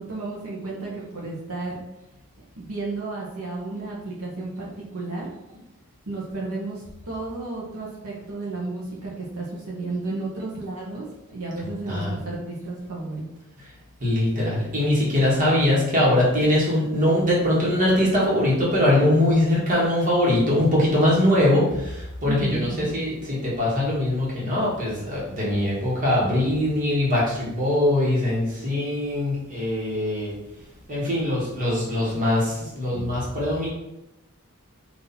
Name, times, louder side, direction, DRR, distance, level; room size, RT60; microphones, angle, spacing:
voice 1, 0.0-1.8 2.6-5.3 6.1-11.1 11.3-13.3 22.3-22.9, right 2 dB, 75° right, -5 dB, 1.0 m, -32 dB
voice 2, 14.0-30.3 30.9-33.7, left 1 dB, 35° right, -6 dB, 1.4 m, -22 dB
4.0 x 2.7 x 4.2 m, 0.90 s
head